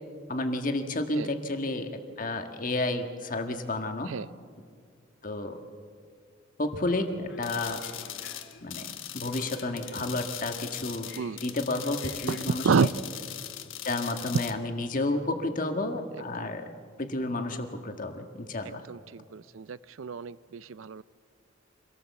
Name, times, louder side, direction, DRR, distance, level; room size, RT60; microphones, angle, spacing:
voice 1, 0.3-1.9 2.2-4.1 5.2-5.6 6.6-7.9 8.6-8.9 9.1-11.1 11.4-12.9 13.8-16.7 17.0-18.8, left 2 dB, 40° left, 6 dB, 1.6 m, -31 dB
sound 1, 7.3-14.0, left 3 dB, 60° left, 2.2 m, -51 dB
sound 2, 7.4-14.5, left 12 dB, 80° left, 1.2 m, -40 dB
voice 2, 18.6-21.0, right 5 dB, 80° right, 18 dB, 0.5 m, -29 dB
25.5 x 17.5 x 7.2 m, 2.1 s
head